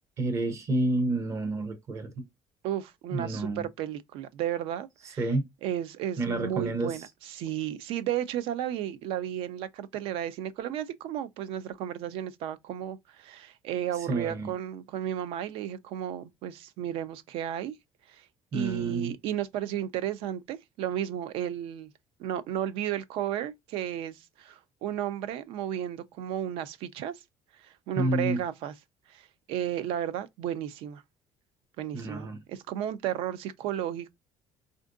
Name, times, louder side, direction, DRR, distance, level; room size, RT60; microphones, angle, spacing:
voice 1, 0.2-2.3 3.1-3.7 5.0-5.5 6.2-7.1 13.9-14.5 18.5-19.1 28.0-28.4 31.9-32.4, right 2 dB, 30° right, 0.7 m, -29 dB
voice 2, 2.6-5.2 5.6-17.7 18.1-18.2 18.5-21.9 22.2-27.1 27.6-28.7 29.1-31.0 31.8-34.1, right 11 dB, 70° right, 0.4 m, -33 dB
4.3 x 2.5 x 2.4 m
cardioid pair, 160°, 10 cm